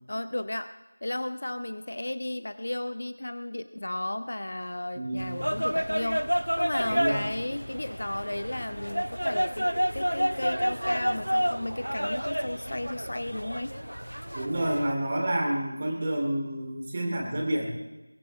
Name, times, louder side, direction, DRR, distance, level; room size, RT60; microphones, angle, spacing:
voice 1, 0.1-0.7 1.0-6.3 6.6-13.7, left 1 dB, 45° left, 12 dB, 0.8 m, -34 dB
voice 2, 4.9-5.5 6.9-7.3 14.3-17.7, right 1 dB, 25° right, 0 dB, 2.8 m, -29 dB
sound 1, 5.2-14.9, equal, 85° right, 0.6 m, -30 dB
23.0 x 18.5 x 3.2 m, 1.1 s
figure-of-eight pair, 170°, 0 cm